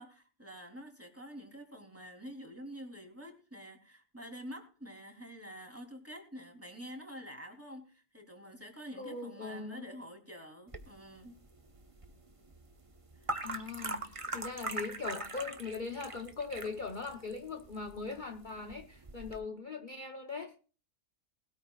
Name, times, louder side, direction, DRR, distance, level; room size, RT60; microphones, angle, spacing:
voice 1, 0.0-11.4 13.2-13.3, equal, 10° right, 3.4 m, -48 dB
voice 2, 9.0-9.9 13.4-20.5, left 4 dB, 40° left, 1.1 m, -40 dB
sound 1, 10.7-19.4, right 2 dB, 25° right, 1.2 m, -42 dB
20.0 x 13.5 x 2.4 m
omnidirectional pair, 1.4 m